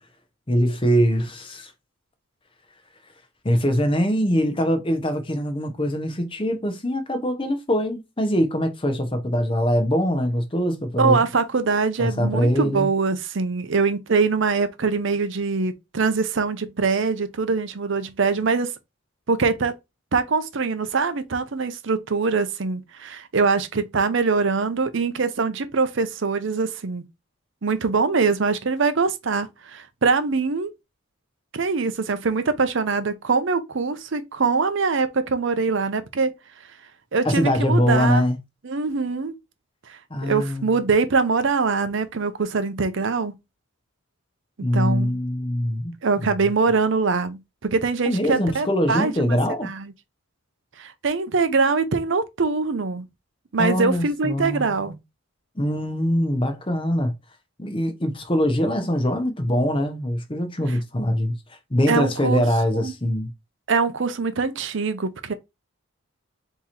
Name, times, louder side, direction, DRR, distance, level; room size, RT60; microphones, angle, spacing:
voice 1, 0.5-1.7 3.4-11.2 12.0-12.9 37.2-38.4 40.1-40.8 44.6-46.0 46.2-46.3 48.0-49.7 53.6-54.9 55.6-57.1 57.6-61.3 61.7-63.3, equal, 25° left, 0.8 m, -23 dB
voice 2, 11.0-18.7 19.3-19.7 20.1-27.0 27.6-30.7 31.5-36.3 37.1-38.2 38.6-39.3 39.9-43.3 44.6-45.1 46.0-49.9 50.8-53.0 53.5-54.9 61.9-62.4 62.7-62.9 63.7-65.3, right 4 dB, 60° right, 0.6 m, -23 dB
3.8 x 3.0 x 4.2 m
head